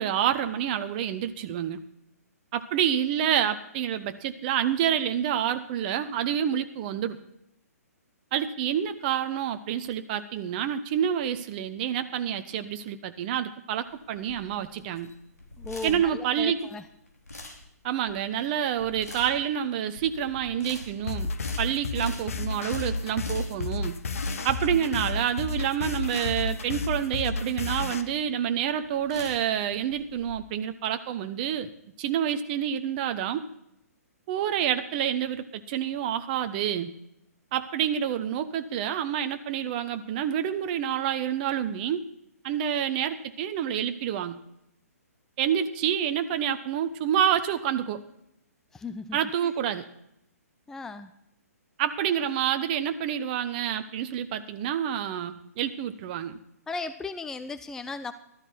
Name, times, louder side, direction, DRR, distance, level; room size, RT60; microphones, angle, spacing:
voice 1, 0.0-1.8 2.5-7.2 8.3-15.1 15.8-16.6 17.8-21.3 21.6-24.0 24.4-31.7 32.0-33.4 34.3-36.9 37.5-42.0 42.4-44.3 45.4-48.0 49.1-49.8 51.8-56.4, right 9 dB, 35° right, 9 dB, 0.8 m, -28 dB
sound 1, 13.8-30.3, left 2 dB, 75° left, 3.1 m, -44 dB
voice 2, 15.6-16.8 48.7-49.2 50.7-51.1 56.7-58.1, left 4 dB, 5° left, 11 dB, 0.4 m, -36 dB
sound 2, 21.1-28.0, left 3 dB, 60° left, 1.2 m, -31 dB
14.0 x 13.0 x 4.4 m, 0.78 s
figure-of-eight pair, 125°, 9 cm